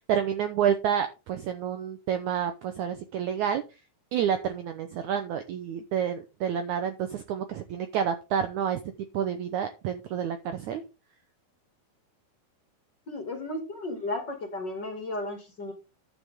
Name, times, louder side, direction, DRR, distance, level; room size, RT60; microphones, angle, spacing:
voice 1, 0.0-3.6 4.1-8.8 9.1-10.8, right 8 dB, 85° right, 8 dB, 1.7 m, -29 dB
voice 2, 13.1-15.7, left 2 dB, 35° left, 3 dB, 2.3 m, -34 dB
12.0 x 7.2 x 3.6 m, 0.29 s
omnidirectional pair, 4.6 m